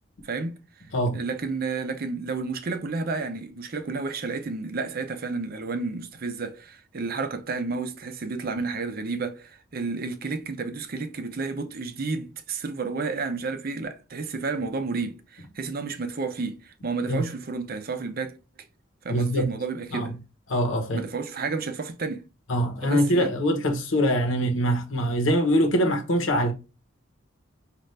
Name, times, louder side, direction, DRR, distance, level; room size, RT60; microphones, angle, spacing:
voice 1, 1.1-18.4 19.0-20.1 20.9-22.2 22.8-23.3, right 4 dB, 50° right, 0.6 m, -31 dB
voice 2, 19.1-19.5 19.9-20.1 20.5-21.0 22.5-26.5, equal, 80° left, 1.0 m, -23 dB
5.3 x 2.5 x 3.2 m
head